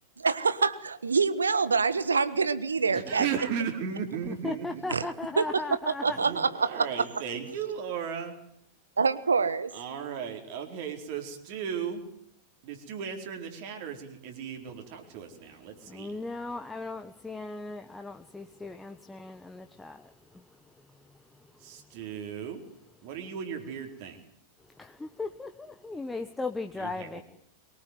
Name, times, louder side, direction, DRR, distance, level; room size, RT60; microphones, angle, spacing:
voice 1, 0.2-3.3 4.9-5.1 5.4-7.0 9.0-9.7, right 5 dB, 75° right, 14 dB, 1.4 m, -26 dB
voice 2, 2.9-4.8 6.0-8.3 9.7-12.0 12.6-16.1 21.6-22.6 23.0-24.2 26.8-27.2, right 7 dB, 50° right, 4 dB, 4.4 m, -36 dB
voice 3, 4.3-6.2 15.9-20.4 24.8-27.2, left 3 dB, 10° left, 6 dB, 1.2 m, -37 dB
23.5 x 19.0 x 9.4 m, 0.70 s
figure-of-eight pair, 90°, 0 cm